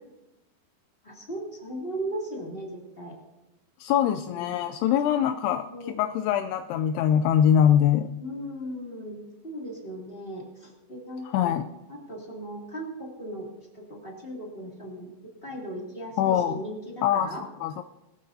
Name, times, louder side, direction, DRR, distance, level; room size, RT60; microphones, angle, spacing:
voice 1, 1.0-3.1 4.0-4.5 5.0-5.2 5.6-5.9 8.2-11.6 11.9-13.5 13.7-15.1 15.4-17.4, right 1 dB, 20° left, -3 dB, 1.8 m, -37 dB
voice 2, 3.8-5.7 5.9-8.1 11.2-11.7 16.2-16.6 17.0-17.3 17.6-17.8, left 9 dB, 85° left, 7 dB, 2.3 m, -23 dB
21.5 x 13.0 x 2.8 m, 0.98 s
omnidirectional pair, 5.1 m